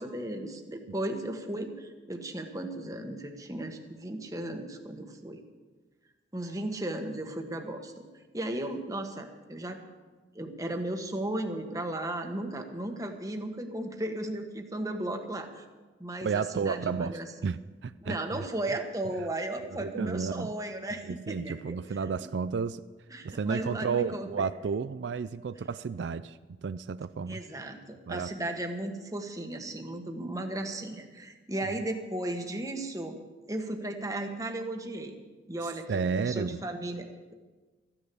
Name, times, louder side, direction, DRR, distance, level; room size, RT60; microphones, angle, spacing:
voice 1, 0.0-5.4 6.3-8.0 8.3-9.8 10.3-15.6 16.0-17.3 18.0-21.8 22.2-22.3 23.1-24.5 27.3-33.2 33.5-35.2 35.5-37.3, right 1 dB, 20° right, 4 dB, 1.3 m, -35 dB
voice 2, 16.2-18.5 19.6-20.5 21.1-22.8 23.2-27.4 28.1-28.3 35.9-36.6, right 5 dB, 80° right, 14 dB, 0.4 m, -32 dB
14.5 x 10.0 x 6.9 m, 1.3 s
head